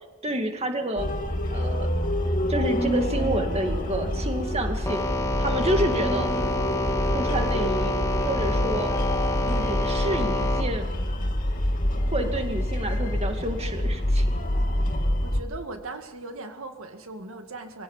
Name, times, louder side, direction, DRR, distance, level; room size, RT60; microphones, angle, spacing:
voice 1, 0.2-1.1 1.5-1.9 2.5-5.0 5.4-6.3 7.1-7.9 8.3-8.9 9.5-10.9 12.0-14.3, right 1 dB, 30° right, 5 dB, 2.1 m, -29 dB
sound 1, 1.0-15.4, left 1 dB, 40° left, 2.4 m, -27 dB
sound 2, 4.9-10.6, left 1 dB, 15° left, 2.0 m, -28 dB
voice 2, 15.2-17.8, right 2 dB, 75° right, 6 dB, 2.1 m, -38 dB
23.0 x 17.0 x 7.4 m, 1.2 s
head